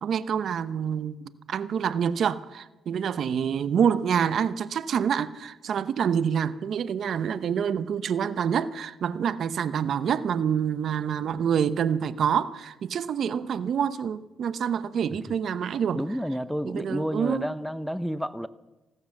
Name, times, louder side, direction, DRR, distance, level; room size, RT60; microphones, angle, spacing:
voice 1, 0.0-16.0 16.6-17.5, right 8 dB, 60° right, 0.8 m, -27 dB
voice 2, 15.9-18.5, equal, ahead, 0.7 m, -30 dB
16.5 x 12.0 x 7.2 m
cardioid pair, 90°, 0 cm